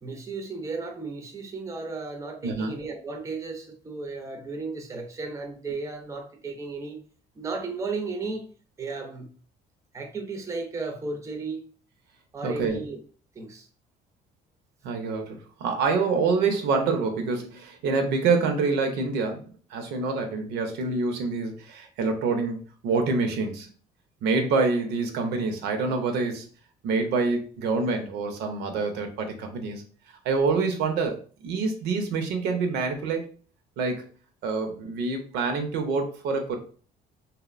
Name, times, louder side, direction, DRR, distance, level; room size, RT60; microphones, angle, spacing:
voice 1, 0.0-7.0 7.4-8.4 8.8-9.3 9.9-11.6 12.3-13.0 13.4-13.7, right 3 dB, 20° right, 0.5 m, -34 dB
voice 2, 12.4-12.8 14.8-23.7 24.2-26.5 26.8-29.8 30.2-33.3 33.8-34.0 34.4-36.6, right 4 dB, 85° right, 0.5 m, -26 dB
2.7 x 2.0 x 2.4 m
cardioid pair, 110°, 17 cm